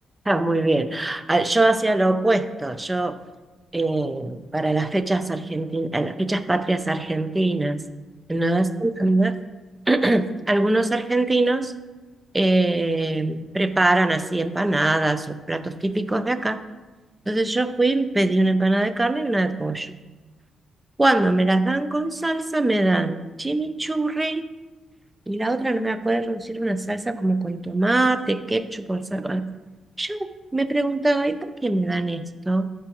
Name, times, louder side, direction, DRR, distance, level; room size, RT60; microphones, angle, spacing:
voice 1, 0.3-3.1 3.7-7.8 8.3-9.4 9.9-11.7 12.3-16.6 17.3-20.0 21.0-24.4 25.3-29.5 30.0-30.3 30.5-32.7, right 2 dB, 10° right, 10 dB, 0.5 m, -22 dB
13.5 x 4.8 x 3.0 m, 1.2 s
cardioid pair, 140°, 0 cm